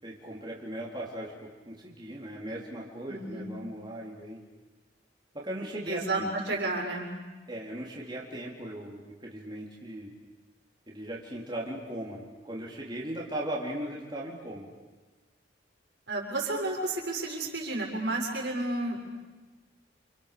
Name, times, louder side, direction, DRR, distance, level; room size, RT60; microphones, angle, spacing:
voice 1, 0.0-4.4 5.3-6.3 7.5-10.1 10.9-14.7, right 1 dB, 25° right, -4 dB, 4.0 m, -38 dB
voice 2, 3.1-3.5 5.9-7.1 16.1-19.0, right 2 dB, 70° right, -1 dB, 7.0 m, -31 dB
29.5 x 29.0 x 7.0 m, 1.2 s
head